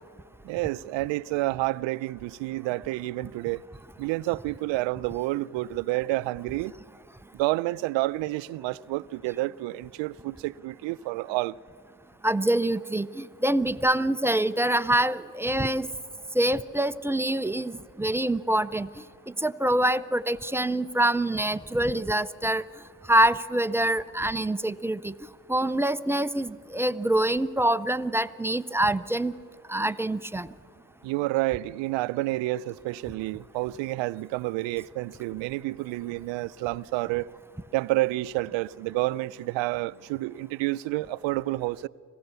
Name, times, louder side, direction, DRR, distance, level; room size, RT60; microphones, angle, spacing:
voice 1, 0.4-3.6 4.0-6.7 7.3-11.6 31.0-37.3 37.7-41.9, right 18 dB, 75° right, 0.6 m, -29 dB
voice 2, 12.2-15.9 16.4-18.9 19.4-22.6 23.1-25.1 25.5-29.3 29.7-30.5, right 1 dB, 5° right, 0.4 m, -25 dB
26.0 x 16.5 x 6.8 m
supercardioid pair, 80°, 45 cm